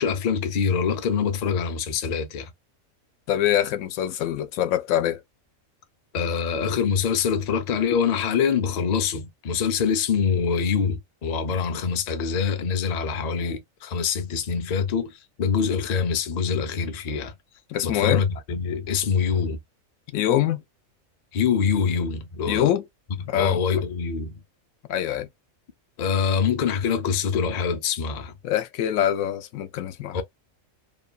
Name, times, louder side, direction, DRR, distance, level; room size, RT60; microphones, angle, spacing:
voice 1, 0.0-2.5 6.1-17.3 17.8-19.6 21.3-22.7 23.4-24.4 26.0-28.3 30.1-30.2, left 6 dB, 50° left, 0.5 m, -25 dB
voice 2, 3.3-5.2 17.7-18.2 20.1-20.6 22.5-22.8 23.3-23.6 24.9-25.3 28.4-30.2, left 11 dB, 85° left, 1.0 m, -24 dB
3.0 x 2.2 x 2.3 m
omnidirectional pair, 1.4 m